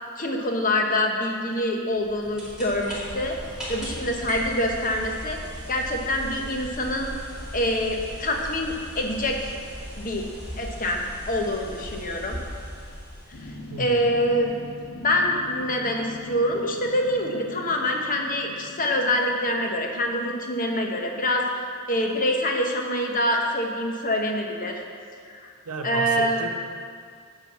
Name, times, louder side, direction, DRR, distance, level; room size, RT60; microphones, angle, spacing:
voice 1, 0.2-3.4 3.7-5.4 5.7-7.1 7.5-9.5 10.0-10.2 10.6-11.0 11.3-12.4 13.4-13.5 13.8-14.5 15.0-21.5 21.9-24.8 25.3-25.5 25.8-26.5, left 1 dB, 40° left, 2 dB, 1.0 m, -25 dB
sound 1, 1.9-13.7, equal, 5° right, 2.6 m, -37 dB
sound 2, 13.3-21.8 22.1-22.2, left 2 dB, 80° left, 1.1 m, -43 dB
voice 2, 25.7-26.5, right 3 dB, 85° right, 3 dB, 0.9 m, -33 dB
10.0 x 4.0 x 7.2 m, 2.1 s
head